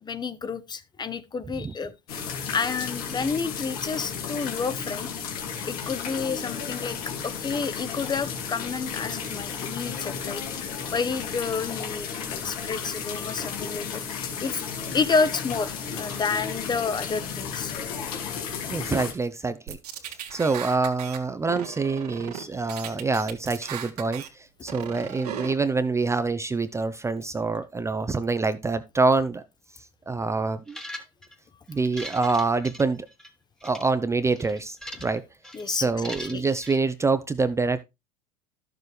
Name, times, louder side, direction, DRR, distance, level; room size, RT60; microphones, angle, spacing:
voice 1, 0.0-5.1 5.6-7.0 7.2-12.1 12.4-14.6 14.9-17.7 35.5-36.5, left 5 dB, 20° left, 0.9 m, -30 dB
sound 1, 2.1-19.1, left 6 dB, 70° left, 2.4 m, -33 dB
voice 2, 18.7-19.8 20.3-29.4 30.1-30.8 31.7-33.1 33.6-35.2 35.7-37.8, right 3 dB, 15° right, 0.6 m, -26 dB
sound 2, 19.7-21.2 21.5-22.4 22.7-24.3 24.7-25.5, right 10 dB, 80° right, 1.7 m, -36 dB
sound 3, 30.7-31.3 31.8-33.3 33.6-33.8 34.4-35.2 35.4-35.6 36.0-36.8, equal, 5° left, 1.3 m, -40 dB
12.0 x 6.9 x 3.2 m
hypercardioid pair, 90°, 20 cm